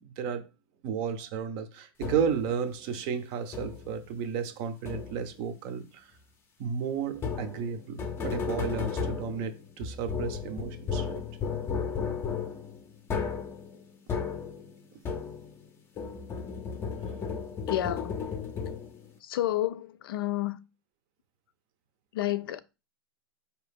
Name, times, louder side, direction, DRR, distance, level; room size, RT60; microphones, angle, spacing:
voice 1, 0.0-0.5 0.8-6.1 6.6-11.2 17.0-17.1, right 7 dB, 40° right, 0.6 m, -33 dB
sound 1, 2.0-2.5 3.5-4.0 4.9-5.4 7.1-15.7 16.0-19.1, left 6 dB, 20° left, 0.6 m, -34 dB
voice 2, 17.7-18.3 19.2-20.6 22.1-22.6, left 13 dB, 70° left, 0.4 m, -30 dB
4.4 x 2.8 x 3.5 m
supercardioid pair, 145°, 12 cm